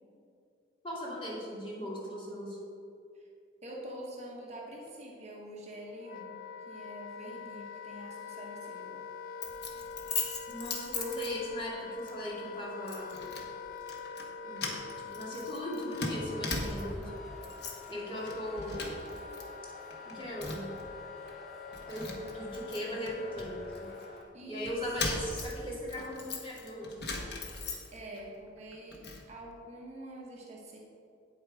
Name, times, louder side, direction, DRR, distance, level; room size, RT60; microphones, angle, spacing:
voice 1, 0.8-2.6 10.5-13.2 14.4-14.6 15.0-17.1 17.9-18.9 20.1-20.7 21.9-23.9 24.5-26.9, equal, 30° left, -6 dB, 2.6 m, -38 dB
voice 2, 3.6-6.3 6.7-9.0 24.3-24.8 27.9-29.0 29.3-30.8, right 1 dB, 40° right, -3 dB, 1.4 m, -45 dB
Wind instrument woodwind instrument, 5.5-24.4, left 6 dB, 50° left, 0.3 m, -45 dB
Keys jangling, 9.4-11.7 12.1-12.3 12.9-13.5 13.8-14.3 14.6-17.0 17.4-17.9 18.2-19.4 19.7-20.8 21.3-21.4 21.7-24.1 24.6-28.2 28.6-29.2, left 3 dB, 65° left, 1.3 m, -39 dB
sound 1, 16.3-24.2, right 1 dB, ahead, 1.5 m, -52 dB
8.8 x 8.2 x 4.9 m, 2.5 s
head